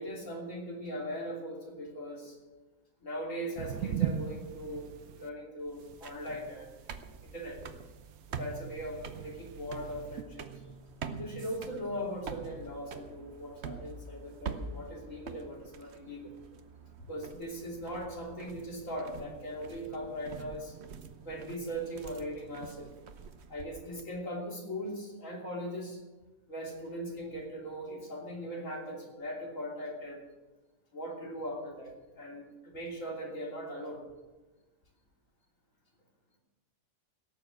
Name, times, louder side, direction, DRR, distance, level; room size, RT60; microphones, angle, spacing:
voice 1, 0.0-2.4 3.0-4.9 5.1-6.7 7.2-7.6 8.3-10.5 11.2-16.3 17.1-20.7 21.3-22.9 23.5-26.0 26.5-30.2 30.9-34.0, equal, 50° left, -2 dB, 3.5 m, -39 dB
sound 1, 3.6-5.3 5.8-10.2, right 9 dB, 70° right, 1.2 m, -39 dB
sound 2, 5.6-24.0, right 5 dB, 50° right, 1.0 m, -46 dB
17.5 x 7.0 x 7.8 m, 1.2 s
omnidirectional pair, 1.7 m